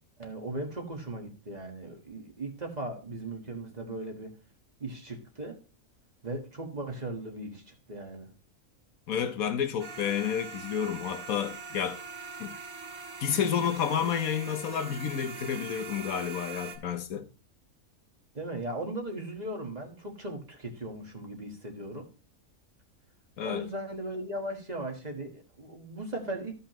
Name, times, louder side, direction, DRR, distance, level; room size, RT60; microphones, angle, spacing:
voice 1, 0.2-4.4 4.8-5.6 6.2-8.3 18.3-22.1 23.4-26.6, right 1 dB, 30° right, 1.5 m, -38 dB
voice 2, 9.1-12.0 12.4-12.6 13.2-17.3 23.4-23.6, left 8 dB, 75° left, 1.3 m, -30 dB
sound 1, 9.8-16.8, right 4 dB, 75° right, 1.6 m, -42 dB
13.5 x 5.6 x 3.0 m
omnidirectional pair, 1.5 m